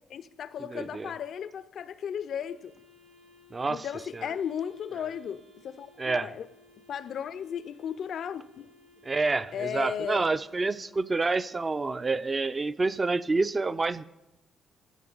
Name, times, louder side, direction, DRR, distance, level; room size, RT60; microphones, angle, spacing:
voice 1, 0.1-2.7 3.7-6.5 6.9-8.7 9.5-10.3, left 8 dB, 65° left, 0.4 m, -35 dB
voice 2, 0.7-1.1 3.5-3.9 4.1-4.3 6.0-6.3 9.0-14.0, right 3 dB, 30° right, 0.4 m, -28 dB
Wind instrument woodwind instrument, 2.3-11.5, left 1 dB, 80° right, 1.6 m, -59 dB
15.0 x 6.1 x 3.9 m
cardioid pair, 90°, 0 cm